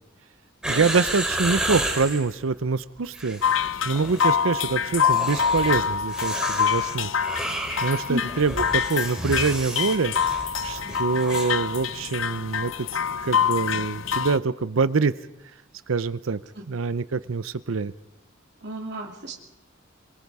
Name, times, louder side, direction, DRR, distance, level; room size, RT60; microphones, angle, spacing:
sound 1, 0.6-2.3 3.0-3.7 4.0-4.4 5.0-11.6 11.8-11.9, right 1 dB, 5° right, 2.9 m, -31 dB
voice 1, 0.6-3.4 3.8-7.1 7.4-12.9 13.2-15.1 15.9-16.4 16.7-17.9, right 4 dB, 80° right, 15 dB, 0.6 m, -25 dB
sound 2, 3.4-14.4, left 7 dB, 80° left, 0.8 m, -26 dB
voice 2, 18.6-19.3, equal, 55° right, 0 dB, 2.6 m, -32 dB
23.5 x 23.5 x 4.8 m, 0.88 s
head